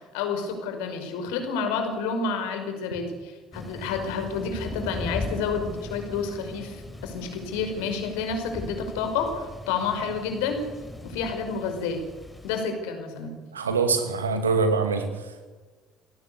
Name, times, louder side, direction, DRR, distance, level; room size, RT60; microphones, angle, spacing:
voice 1, 0.1-10.6 11.0-12.0 12.4-13.4, left 5 dB, 65° left, 6 dB, 5.1 m, -29 dB
Thunder, 3.5-12.6, left 1 dB, 10° left, 4.5 m, -39 dB
voice 2, 13.5-15.4, right 4 dB, 80° right, 7 dB, 2.6 m, -24 dB
28.0 x 18.0 x 8.4 m, 1.3 s
figure-of-eight pair, 55°, 0 cm